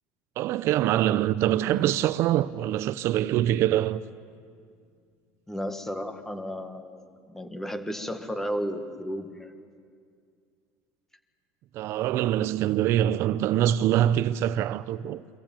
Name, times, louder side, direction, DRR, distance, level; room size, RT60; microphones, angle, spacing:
voice 1, 0.4-4.0 11.7-15.2, right 12 dB, 55° right, 0.5 m, -24 dB
sound 1, 1.6-4.5, right 2 dB, 15° right, 3.9 m, -47 dB
voice 2, 5.5-9.5, equal, 5° left, 1.6 m, -33 dB
24.5 x 15.0 x 8.9 m
cardioid pair, 130°, 5 cm